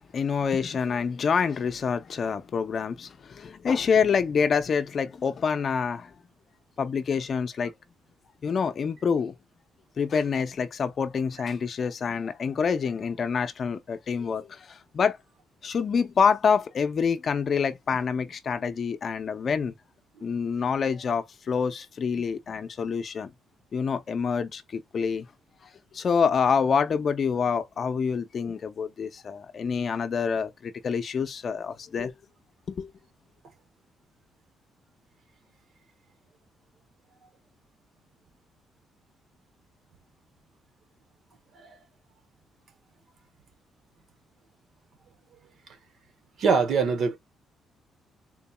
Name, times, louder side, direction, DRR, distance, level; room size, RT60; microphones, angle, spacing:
voice 1, 0.1-6.1 6.8-7.7 8.4-9.3 10.0-15.2 15.6-19.7 20.2-23.3 23.7-25.3 25.9-32.1 32.7-32.9, left 6 dB, 50° left, 0.6 m, -27 dB
voice 2, 46.4-47.2, right 5 dB, 65° right, 1.0 m, -23 dB
3.8 x 2.7 x 2.3 m
cardioid pair, 90°, 0 cm